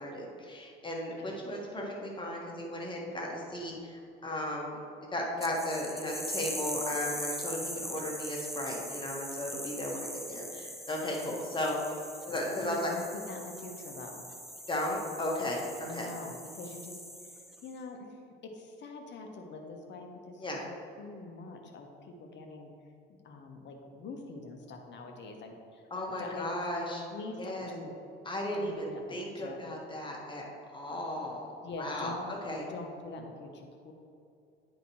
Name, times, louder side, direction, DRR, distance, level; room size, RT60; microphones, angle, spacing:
voice 1, 0.0-4.8 5.1-11.8 12.3-12.9 14.7-16.1 20.4-20.6 25.9-27.0 27.4-27.7 28.2-30.4 30.7-31.5 31.8-32.6, left 1 dB, 15° left, -2 dB, 1.5 m, -35 dB
sound 1, 5.4-17.7, equal, ahead, 0.6 m, -41 dB
voice 2, 12.7-14.3 15.8-17.0 17.6-18.1 18.4-20.6 21.0-22.7 23.1-25.8 26.2-26.5 27.1-27.9 28.5-29.6 31.6-32.3 32.7-33.9, left 3 dB, 35° left, 3 dB, 1.0 m, -44 dB
9.4 x 5.0 x 3.1 m, 2.5 s
figure-of-eight pair, 60°, 30 cm